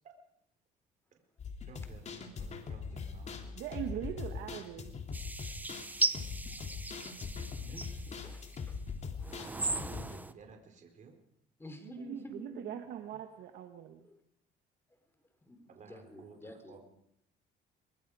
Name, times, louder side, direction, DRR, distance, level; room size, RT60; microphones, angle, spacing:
sound 1, 1.4-10.1, left 5 dB, 45° left, 3.1 m, -42 dB
voice 1, 1.6-3.6 7.6-7.9 9.5-11.1 15.7-16.8, right 5 dB, 45° right, 4 dB, 4.5 m, -54 dB
voice 2, 3.5-4.9 11.8-14.1, right 10 dB, 80° right, 6 dB, 1.6 m, -41 dB
sound 2, 5.1-8.6 9.2-10.3, right 2 dB, 10° right, 1.0 m, -37 dB
voice 3, 7.5-8.8 11.6-12.7 14.0-14.2 15.4-16.8, left 1 dB, 15° left, 7 dB, 3.8 m, -50 dB
23.5 x 22.0 x 5.0 m, 0.75 s
cardioid pair, 110°, 17 cm